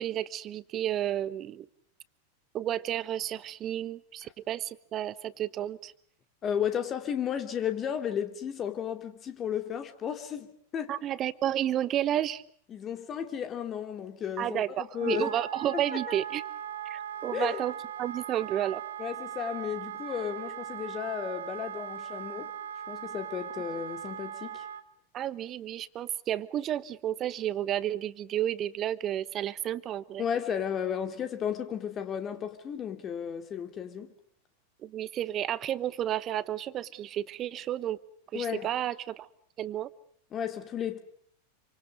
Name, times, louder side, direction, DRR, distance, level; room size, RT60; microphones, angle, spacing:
voice 1, 0.0-1.7 2.5-5.9 10.9-12.4 14.4-16.4 16.8-18.8 25.1-30.2 34.8-38.0 38.3-39.3 39.6-39.9, right 11 dB, 30° right, 1.1 m, -31 dB
voice 2, 6.4-10.9 12.7-15.3 15.7-15.8 16.1-16.2 17.3-17.6 19.0-22.5 22.9-24.6 30.2-34.1 38.3-38.7 40.3-41.0, left 8 dB, 25° left, 2.9 m, -33 dB
Wind instrument woodwind instrument, 14.9-24.8, right 9 dB, 65° right, 1.5 m, -39 dB
28.0 x 26.0 x 6.5 m
figure-of-eight pair, 90°, 0 cm